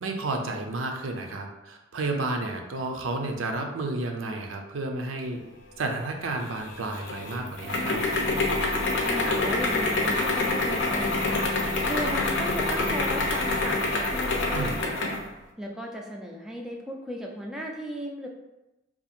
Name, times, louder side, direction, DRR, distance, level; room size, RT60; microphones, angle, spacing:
voice 1, 0.0-5.4 5.8-8.0 14.5-14.7, right 2 dB, 85° right, 4 dB, 0.5 m, -31 dB
sound 1, 6.4-15.2, left 2 dB, 65° left, 0.6 m, -27 dB
voice 2, 9.0-11.5 11.8-15.1 15.6-18.3, equal, 5° right, -1 dB, 0.3 m, -35 dB
2.8 x 2.4 x 4.2 m, 0.99 s
head